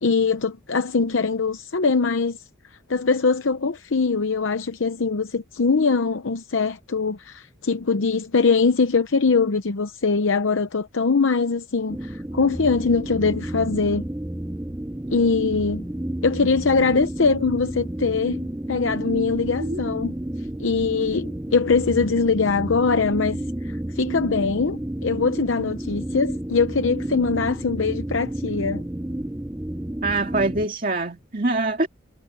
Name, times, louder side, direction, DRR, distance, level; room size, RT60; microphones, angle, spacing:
voice 1, 0.0-2.4 2.9-14.1 15.1-15.9 16.2-20.1 20.6-28.8, left 4 dB, 75° left, 0.7 m, -22 dB
sound 1, 11.9-30.7, right 1 dB, 10° right, 0.6 m, -31 dB
voice 2, 30.0-31.9, right 2 dB, 45° right, 2.2 m, -24 dB
head